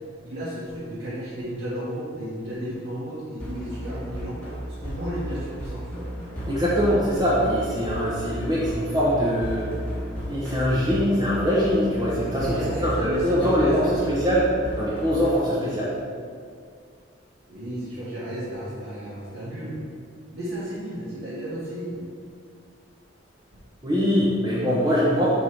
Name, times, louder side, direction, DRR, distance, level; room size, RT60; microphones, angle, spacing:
voice 1, 0.2-4.4 4.7-6.1 12.3-14.0 17.5-19.8 20.3-22.0, equal, 80° right, -11 dB, 1.6 m, -33 dB
sound 1, 3.4-15.4, right 1 dB, 5° left, 1.2 m, -34 dB
voice 2, 6.5-9.7 10.3-15.9 23.8-25.3, equal, 20° right, -8 dB, 0.8 m, -23 dB
5.4 x 4.6 x 4.8 m, 2.2 s
head